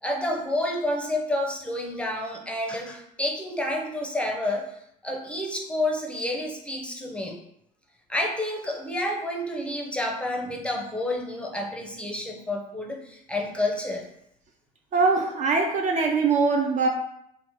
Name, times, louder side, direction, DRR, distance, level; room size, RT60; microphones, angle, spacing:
voice 1, 0.0-4.7 5.0-7.4 8.1-14.1, left 1 dB, 5° left, 1 dB, 0.6 m, -29 dB
voice 2, 14.9-16.9, right 4 dB, 40° right, 3 dB, 0.4 m, -22 dB
3.0 x 2.1 x 3.0 m, 0.76 s
hypercardioid pair, 70°, 20 cm